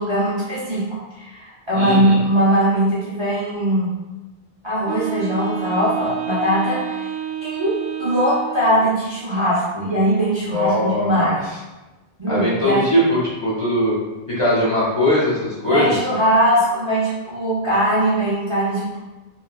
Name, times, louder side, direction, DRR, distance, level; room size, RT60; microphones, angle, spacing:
voice 1, 0.0-3.9 4.6-7.1 7.4-11.4 12.2-12.9 15.7-19.0, right 1 dB, 35° right, -9 dB, 0.5 m, -20 dB
voice 2, 1.7-2.2 10.5-11.3 12.3-13.9 14.4-15.9, left 1 dB, 35° left, -9 dB, 0.6 m, -20 dB
Wind instrument woodwind instrument, 4.8-9.0, right 9 dB, 65° right, 0.9 m, -29 dB
2.9 x 2.2 x 2.3 m, 1.1 s
omnidirectional pair, 1.1 m